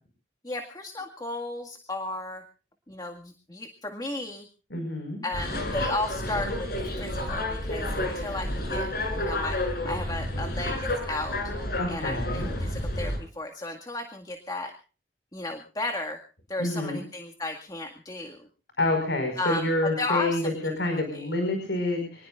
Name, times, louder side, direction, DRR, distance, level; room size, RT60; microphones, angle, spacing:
voice 1, 0.4-2.4 2.9-4.5 5.2-8.9 9.1-11.4 11.9-14.7 15.3-16.2 16.5-18.5 19.4-20.7 21.1-21.3, left 2 dB, 20° left, 4 dB, 2.0 m, -34 dB
voice 2, 4.7-5.2 11.8-12.5 16.6-17.0 18.8-22.3, left 2 dB, 85° left, 5 dB, 5.3 m, -28 dB
sound 1, 5.3-13.2, left 1 dB, 55° left, 7.2 m, -30 dB
26.0 x 20.0 x 2.5 m, 0.36 s
head